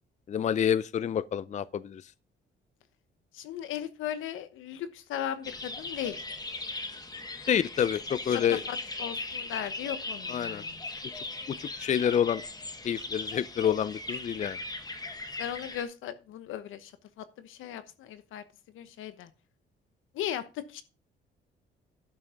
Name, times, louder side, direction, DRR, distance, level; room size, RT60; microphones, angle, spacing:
voice 1, 0.3-2.0 7.5-8.6 10.3-10.6 11.6-12.4 12.8-14.6, left 9 dB, 35° left, 0.4 m, -28 dB
voice 2, 3.3-6.3 8.3-10.8 15.4-16.9 17.2-18.4 18.7-19.3 20.1-20.8, left 10 dB, 85° left, 1.1 m, -37 dB
sound 1, 5.4-15.8, left 2 dB, 20° left, 1.4 m, -39 dB
11.5 x 5.7 x 5.2 m
cardioid pair, 90°, 20 cm